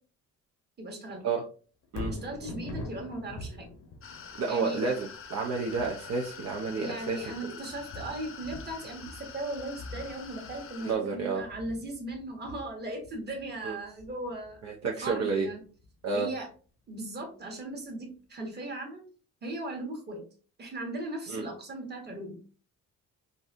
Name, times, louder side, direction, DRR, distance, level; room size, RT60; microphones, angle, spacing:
voice 1, 0.8-1.3 2.0-3.7 4.5-4.8 6.8-14.6 15.0-15.6 16.1-16.5 16.9-19.0 19.4-20.2 20.6-22.5, right 1 dB, 35° right, 1 dB, 1.3 m, -38 dB
Thunder, 1.8-16.0 16.5-16.6, left 2 dB, 85° left, 1.0 m, -45 dB
sound 1, 4.0-10.9, left 6 dB, 45° left, 0.7 m, -46 dB
voice 2, 4.3-7.2 10.9-11.4 13.6-13.8 14.6-15.5 16.0-16.3 21.3-21.4, right 4 dB, 60° right, -1 dB, 0.6 m, -30 dB
3.9 x 2.5 x 2.5 m, 0.39 s
cardioid pair, 90°, 30 cm